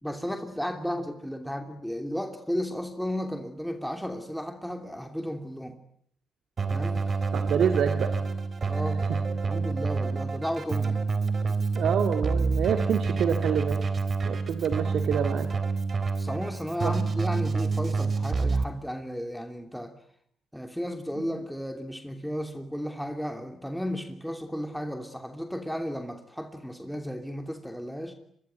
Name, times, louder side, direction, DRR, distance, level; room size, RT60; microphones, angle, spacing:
voice 1, 0.0-5.8 6.7-7.1 8.6-9.1 9.5-11.0 16.2-19.9 20.5-28.1, equal, ahead, 5 dB, 2.9 m, -34 dB
Keyboard (musical), 6.6-18.6, right 4 dB, 40° right, 3.7 m, -28 dB
voice 2, 7.3-8.1 9.1-9.2 11.7-13.8 14.2-15.5 16.8-16.9 21.2-21.4, right 8 dB, 65° right, 7 dB, 2.2 m, -27 dB
26.5 x 23.0 x 9.4 m, 0.66 s
cardioid pair, 90°, 0 cm